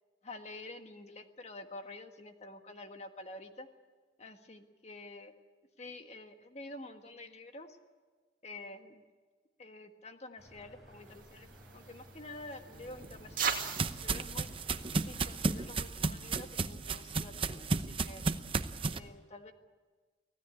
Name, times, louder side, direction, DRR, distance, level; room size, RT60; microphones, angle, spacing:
voice 1, 0.2-3.7 4.2-5.3 5.8-7.8 8.4-9.0 9.6-11.5 11.7-13.6 14.0-18.2 18.9-19.5, left 2 dB, 40° left, 6 dB, 1.5 m, -48 dB
sound 1, 10.4-15.7, equal, ahead, 6.9 m, -56 dB
sound 2, 11.0-16.1, right 7 dB, 50° right, 2.5 m, -41 dB
sound 3, 12.9-19.0, right 3 dB, 30° right, 0.8 m, -34 dB
24.5 x 16.5 x 8.4 m, 1.4 s
head